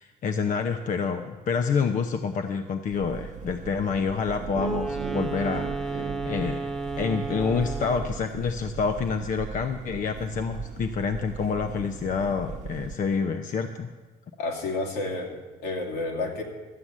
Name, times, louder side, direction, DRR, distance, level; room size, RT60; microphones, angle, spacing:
voice 1, 0.0-6.7 7.0-13.9, left 5 dB, 50° left, 6 dB, 0.8 m, -28 dB
sound 1, 2.9-13.0, right 6 dB, 45° right, 0.8 m, -40 dB
sound 2, 4.4-7.5, right 13 dB, 85° right, 0.5 m, -38 dB
Wind instrument woodwind instrument, 4.5-8.2, right 3 dB, ahead, 0.9 m, -33 dB
voice 2, 14.4-16.4, left 2 dB, 80° left, 1 dB, 2.5 m, -30 dB
13.0 x 7.9 x 7.3 m, 1.3 s
cardioid pair, 110°, 17 cm